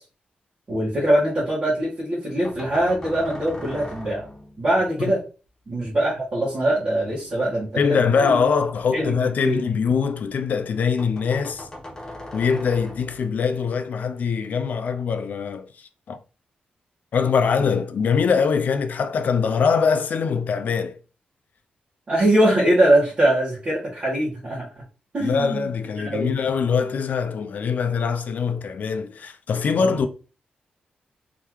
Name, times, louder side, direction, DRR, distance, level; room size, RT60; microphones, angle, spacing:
voice 1, 0.7-4.3 4.6-5.2 5.7-8.4 8.9-9.6 22.1-24.7 25.1-26.4 29.8-30.0, right 1 dB, 35° right, 1.7 m, -22 dB
sound 1, 2.4-4.8 6.7-10.0 10.4-10.5 10.7-10.8 11.0-13.5, left 1 dB, 20° left, 1.2 m, -41 dB
voice 2, 7.8-11.7 12.3-16.2 17.1-21.0 25.2-30.1, left 6 dB, 60° left, 0.5 m, -23 dB
3.8 x 3.3 x 3.1 m
wide cardioid pair, 140°, 3 cm